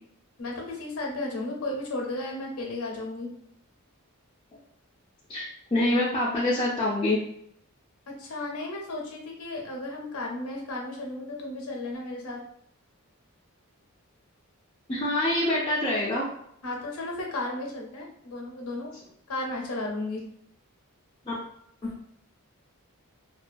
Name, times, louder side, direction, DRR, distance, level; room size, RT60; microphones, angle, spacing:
voice 1, 0.4-3.3 8.1-12.4 16.6-18.9 19.3-20.2, left 2 dB, 75° left, 0 dB, 0.6 m, -34 dB
voice 2, 5.3-7.2 14.9-16.2 21.3-21.4 21.8-21.9, left 1 dB, 25° left, -7 dB, 0.4 m, -25 dB
2.3 x 2.2 x 2.5 m, 0.70 s
head